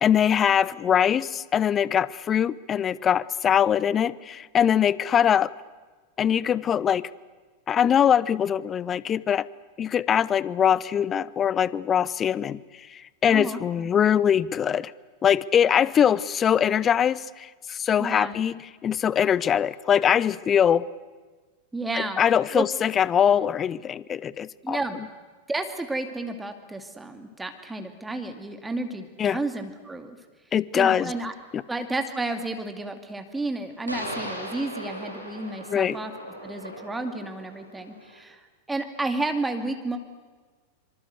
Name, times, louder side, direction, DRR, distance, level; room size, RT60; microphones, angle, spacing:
voice 1, 0.0-5.5 6.2-7.1 7.7-9.5 9.8-12.6 12.9-14.9 15.2-18.5 18.8-20.9 22.2-24.8 29.2-29.4 30.5-31.1 31.5-31.6 35.7-36.0, left 8 dB, 25° left, 21 dB, 0.7 m, -22 dB
voice 2, 13.3-13.9 18.0-18.4 21.7-22.2 22.5-22.6 24.6-25.0 25.5-30.2 30.7-31.3 31.7-36.1 36.4-40.0, right 2 dB, 10° right, 6 dB, 2.3 m, -31 dB
sound 1, 33.9-38.2, equal, 85° right, 7.2 m, -38 dB
26.0 x 25.5 x 8.1 m, 1.3 s
figure-of-eight pair, 90°, 0 cm